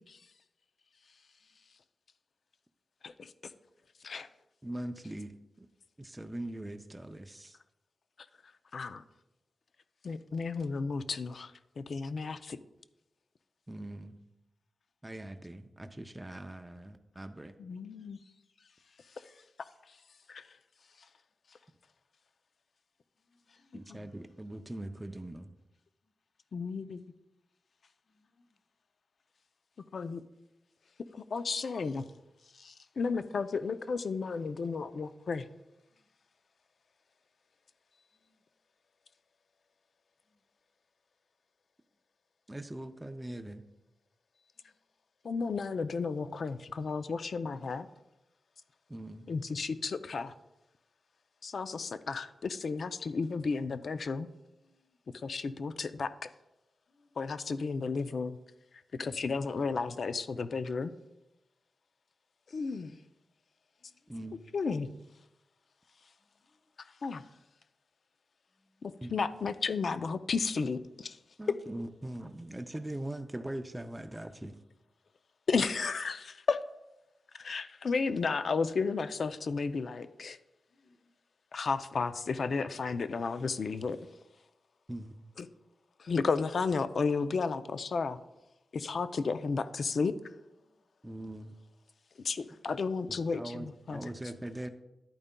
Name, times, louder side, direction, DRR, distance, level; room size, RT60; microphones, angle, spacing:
voice 1, 4.6-5.7 6.0-7.6 13.7-14.2 15.0-17.5 23.7-25.5 42.5-43.6 48.9-49.3 64.1-64.4 69.0-69.1 71.4-74.6 84.9-85.2 91.0-91.5 93.1-94.7, right 1 dB, 10° right, 0.4 m, -41 dB
voice 2, 8.7-9.0 10.0-12.6 17.6-18.2 20.3-20.4 23.7-24.0 26.5-27.0 29.9-30.2 31.1-32.0 32.6-35.5 45.2-47.9 49.3-50.3 51.4-54.3 55.2-56.3 57.2-58.4 58.9-60.9 62.5-63.0 64.5-64.9 67.0-67.2 68.8-71.2 75.5-76.6 77.4-80.4 81.5-84.0 85.4-85.5 86.0-88.2 88.7-90.1 92.2-94.1, left 4 dB, 55° left, 0.4 m, -33 dB
voice 3, 23.2-23.8 28.1-28.6 35.9-36.1 38.1-38.4 40.3-40.4 44.6-44.7 54.6-55.0 56.9-57.2 63.8-64.2 66.2-66.6 68.8-69.0 80.7-81.1 90.6-90.8, left 2 dB, 35° left, 0.7 m, -72 dB
11.0 x 8.8 x 2.2 m
wide cardioid pair, 150°, 0 cm